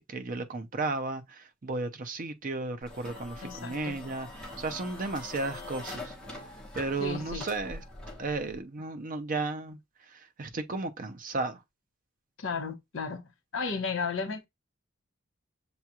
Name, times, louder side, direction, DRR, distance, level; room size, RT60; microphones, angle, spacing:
voice 1, 0.0-6.2 6.7-7.8 8.2-11.6, right 3 dB, 40° right, 0.6 m, -34 dB
sound 1, 2.8-8.6, left 2 dB, 5° left, 1.0 m, -43 dB
voice 2, 3.4-4.0 7.0-7.4 12.4-13.2 13.5-14.4, left 5 dB, 65° left, 0.9 m, -34 dB
6.8 x 2.3 x 2.9 m
head